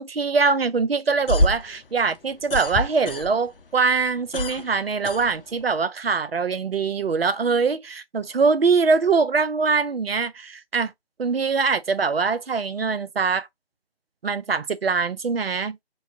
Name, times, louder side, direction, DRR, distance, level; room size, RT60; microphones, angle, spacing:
voice 1, 0.0-10.9 11.2-13.5 14.2-15.8, right 4 dB, 70° right, 0.6 m, -23 dB
sound 1, 1.1-3.6 3.9-5.8, left 1 dB, 60° left, 0.6 m, -26 dB
3.1 x 2.6 x 2.6 m
figure-of-eight pair, 155°, 31 cm